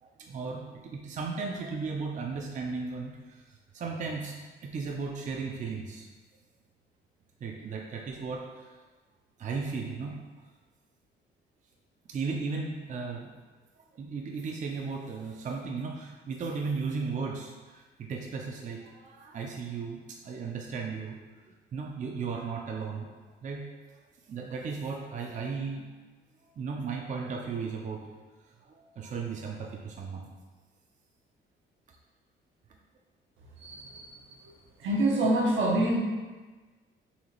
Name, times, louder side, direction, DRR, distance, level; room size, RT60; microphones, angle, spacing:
voice 1, 0.0-3.4 3.7-4.3 4.6-6.1 7.4-8.7 9.4-10.2 12.1-13.3 13.9-21.2 21.5-24.0 24.3-25.9 26.6-28.1 28.6-30.3, right 4 dB, 40° right, 0 dB, 0.4 m, -36 dB
voice 2, 33.6-34.1 34.8-36.0, right 1 dB, 75° right, -1 dB, 0.8 m, -26 dB
4.1 x 2.8 x 3.0 m, 1.3 s
cardioid pair, 90°, 20 cm